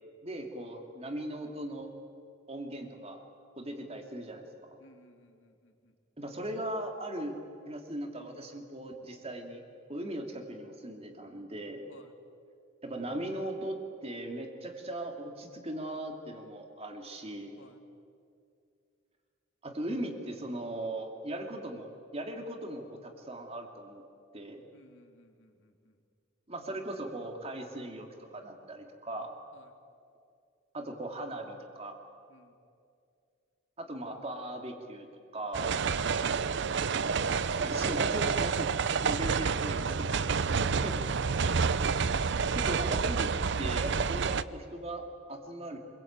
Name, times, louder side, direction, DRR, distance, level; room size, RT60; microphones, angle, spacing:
voice 1, 0.2-1.9 2.5-3.2 3.6-4.8 6.2-7.4 7.7-9.6 9.9-11.8 12.8-17.6 19.6-24.0 24.3-24.6 26.5-29.3 30.7-32.0 33.8-35.1 35.3-35.7 37.6-38.7 39.0-39.8 40.2-41.0 42.5-43.3 43.6-45.8, right 1 dB, 30° right, 4 dB, 2.8 m, -39 dB
voice 2, 4.8-5.9 11.9-12.1 17.6-17.8 24.7-26.0 29.5-29.7 32.3-32.5 39.6-40.2 40.5-41.1, left 1 dB, 65° left, 4 dB, 2.8 m, -57 dB
sound 1, 35.5-44.4, right 5 dB, 60° right, 0.6 m, -29 dB
27.0 x 21.5 x 8.9 m, 2.4 s
head